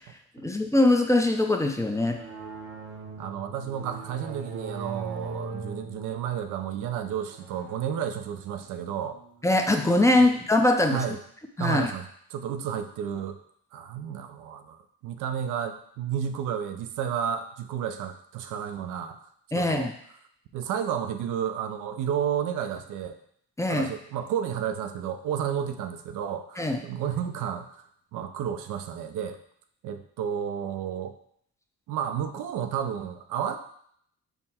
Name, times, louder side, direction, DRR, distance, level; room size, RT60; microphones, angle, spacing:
voice 1, 0.4-2.2 9.4-11.0 11.6-11.9 19.5-19.9 23.6-23.9 26.6-26.8, left 2 dB, 10° left, 3 dB, 0.5 m, -22 dB
sound 1, 2.1-10.2, right 4 dB, 50° right, 0.8 m, -41 dB
voice 2, 3.2-9.1 10.2-10.3 10.9-11.2 11.6-12.1 12.3-13.4 13.7-19.2 19.6-19.9 20.5-23.2 23.7-27.8 28.1-29.4 29.8-31.1 31.9-33.6, right 9 dB, 85° right, 7 dB, 0.5 m, -31 dB
5.6 x 2.1 x 4.3 m, 0.66 s
cardioid pair, 90°, 30 cm